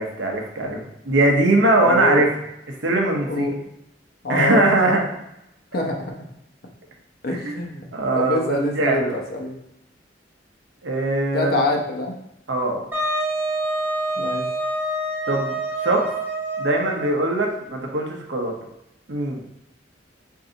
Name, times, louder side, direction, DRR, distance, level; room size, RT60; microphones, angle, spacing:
voice 1, 0.0-2.3 2.8-3.5 4.3-5.0 7.3-7.4 7.9-9.2 10.8-11.7 12.5-12.8 15.3-15.6 15.8-16.1 16.6-18.5 19.1-19.4, right 2 dB, 80° right, 1 dB, 0.9 m, -21 dB
voice 2, 1.8-2.3 3.3-3.6 4.2-5.0 5.7-6.1 7.2-7.8 8.1-9.5 11.3-12.1 14.2-14.4, left 2 dB, 55° left, 1 dB, 0.9 m, -25 dB
Wind instrument woodwind instrument, 12.9-17.3, right 1 dB, 10° right, 1.0 m, -26 dB
4.6 x 2.7 x 3.9 m, 0.83 s
head